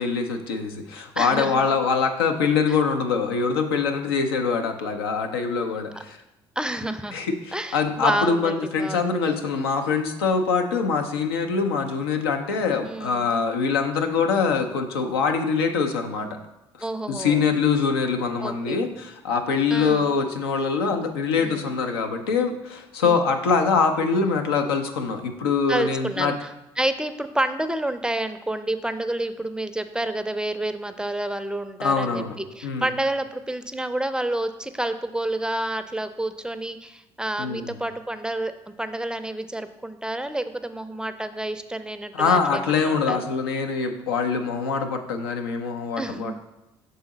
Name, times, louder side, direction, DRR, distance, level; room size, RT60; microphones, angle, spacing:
voice 1, 0.0-6.2 7.1-16.4 17.1-26.4 31.8-32.9 37.4-37.8 42.1-46.4, left 5 dB, 90° left, 5 dB, 0.5 m, -24 dB
voice 2, 1.2-1.6 2.7-2.8 6.6-7.1 7.5-9.1 12.8-13.3 16.8-17.4 18.4-18.8 19.7-20.1 21.4-21.6 23.0-23.2 25.7-26.5 26.8-38.5 38.8-43.2 46.0-46.4, right 1 dB, 5° right, 10 dB, 0.4 m, -29 dB
6.9 x 3.8 x 3.9 m, 0.91 s
hypercardioid pair, 60°, 13 cm